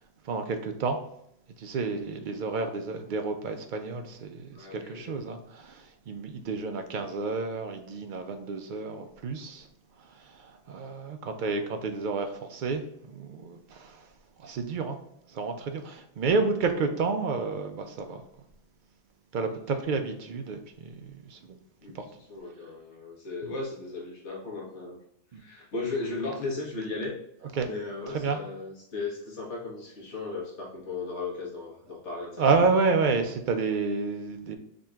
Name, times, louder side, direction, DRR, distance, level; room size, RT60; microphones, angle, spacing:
voice 1, 0.2-1.0 1.6-9.7 10.0-12.8 13.1-14.1 14.4-15.0 15.3-18.2 19.3-21.6 21.9-22.0 25.3-25.4 27.6-27.7 28.1-28.4 32.4-34.6, right 4 dB, 60° right, 6 dB, 0.5 m, -30 dB
voice 2, 4.5-5.2 19.5-19.8 21.8-25.0 25.3-27.2 27.7-32.4, left 3 dB, 70° left, -2 dB, 1.5 m, -36 dB
5.0 x 2.9 x 2.4 m, 0.75 s
omnidirectional pair, 1.3 m